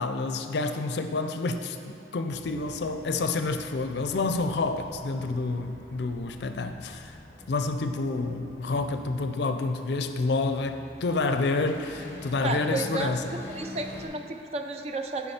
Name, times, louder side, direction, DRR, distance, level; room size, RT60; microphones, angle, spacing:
voice 1, 0.0-7.2 7.5-13.2, left 3 dB, 65° left, 7 dB, 0.4 m, -29 dB
sound 1, 2.3-14.1, left 1 dB, 15° left, 0.8 m, -46 dB
voice 2, 12.4-15.3, right 2 dB, 35° right, 5 dB, 0.4 m, -33 dB
9.9 x 4.8 x 4.2 m, 2.8 s
head